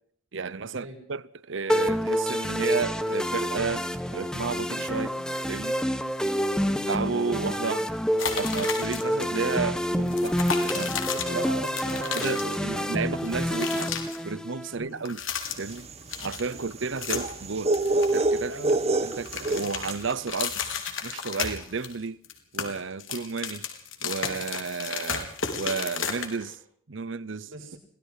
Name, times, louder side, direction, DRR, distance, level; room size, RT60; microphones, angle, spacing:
voice 1, 0.3-5.2 5.5-5.8 6.9-7.9 8.3-11.0 12.1-13.9 14.2-15.2 15.6-15.9 16.2-17.7 18.1-18.6 19.0-20.6 21.0-22.2 22.5-23.7 24.0-25.3 25.6-26.6 26.9-27.8, right 5 dB, 65° right, 0.8 m, -32 dB
sound 1, 1.7-14.7, equal, 5° left, 1.2 m, -28 dB
sound 2, 8.2-9.2 9.5-9.7 10.1-12.9 13.1-14.2 14.9-15.8 16.1-17.4 17.7-18.8 19.1-21.9 22.2-26.5, left 7 dB, 75° left, 4.4 m, -33 dB
voice 2, 11.0-13.9 14.7-14.9 18.5-18.7 27.4-27.8, right 2 dB, 85° right, 6.8 m, -40 dB
sound 3, 15.6-20.1, right 2 dB, 30° right, 1.4 m, -27 dB
26.0 x 18.0 x 5.7 m
head